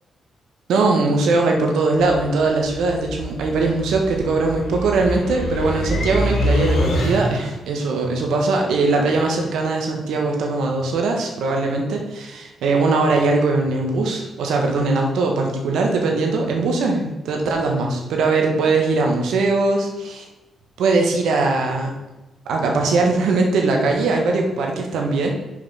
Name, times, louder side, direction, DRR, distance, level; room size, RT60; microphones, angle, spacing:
voice 1, 0.7-20.2 20.8-21.9 22.4-25.3, right 3 dB, 90° right, 2 dB, 1.4 m, -20 dB
sound 1, 2.0-7.6, equal, 85° left, 2.5 m, -25 dB
5.8 x 5.2 x 5.8 m, 1.0 s
cardioid pair, 125°, 0 cm